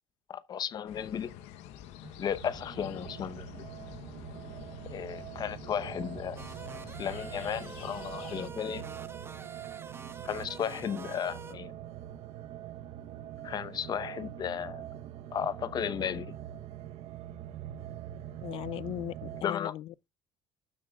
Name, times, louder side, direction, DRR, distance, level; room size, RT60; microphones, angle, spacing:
voice 1, 0.3-1.3 2.2-3.6 4.9-6.4 7.0-8.9 10.2-11.7 13.4-14.8 15.3-16.4 19.4-19.7, left 8 dB, 40° left, 0.8 m, -34 dB
sound 1, 0.9-8.5, left 10 dB, 80° left, 0.8 m, -48 dB
sound 2, 2.0-19.4, right 11 dB, 65° right, 0.9 m, -44 dB
sound 3, 6.4-11.5, right 4 dB, 20° right, 1.1 m, -47 dB
voice 2, 18.4-20.1, left 13 dB, 55° left, 0.5 m, -38 dB
12.5 x 7.4 x 2.3 m
cardioid pair, 120°, 11 cm